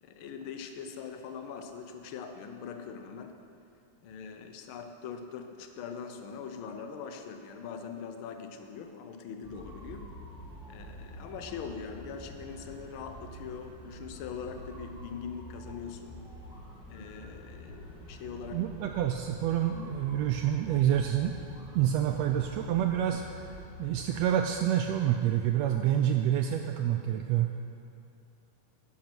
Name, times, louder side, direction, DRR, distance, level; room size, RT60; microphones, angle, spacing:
voice 1, 0.0-3.4 4.0-10.1 10.7-16.2 16.9-18.7, left 6 dB, 75° left, 6 dB, 1.2 m, -42 dB
sound 1, 9.4-24.5, equal, ahead, 1.3 m, -47 dB
voice 2, 18.5-21.4 21.7-23.2 23.8-27.5, right 11 dB, 80° right, 5 dB, 1.6 m, -27 dB
11.0 x 10.5 x 6.0 m, 2.6 s
omnidirectional pair, 3.3 m